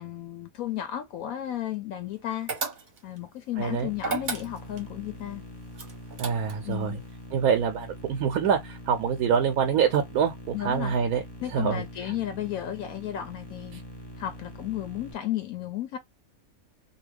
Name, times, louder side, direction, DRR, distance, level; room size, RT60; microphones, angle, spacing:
voice 1, 0.0-2.5 3.0-5.4 6.7-7.0 10.5-10.9 11.4-13.8 14.2-16.0, left 12 dB, 80° left, 1.0 m, -33 dB
sound 1, 2.5-3.2 4.0-4.9 5.8-6.7, right 5 dB, 40° right, 0.8 m, -33 dB
sound 2, 3.6-15.1, left 1 dB, 20° left, 0.8 m, -44 dB
voice 2, 3.6-3.9 6.2-7.0 7.3-11.2 11.5-12.2 13.7-13.8, right 7 dB, 85° right, 1.1 m, -26 dB
2.7 x 2.4 x 3.3 m
omnidirectional pair, 1.5 m